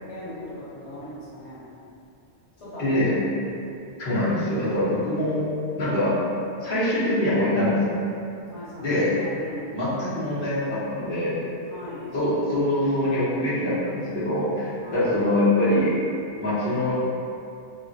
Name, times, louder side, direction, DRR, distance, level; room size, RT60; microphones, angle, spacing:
voice 1, 0.1-1.7 2.6-3.3 8.4-9.8 11.6-12.1 14.8-15.2, left 1 dB, 85° left, -10 dB, 1.1 m, -38 dB
voice 2, 2.8-3.2 4.0-5.5 5.8-6.2 6.6-8.0 8.8-9.1 9.7-11.4 12.1-15.9 16.4-17.0, left 1 dB, 50° left, -12 dB, 1.1 m, -24 dB
3.5 x 2.1 x 2.6 m, 2.6 s
omnidirectional pair, 1.2 m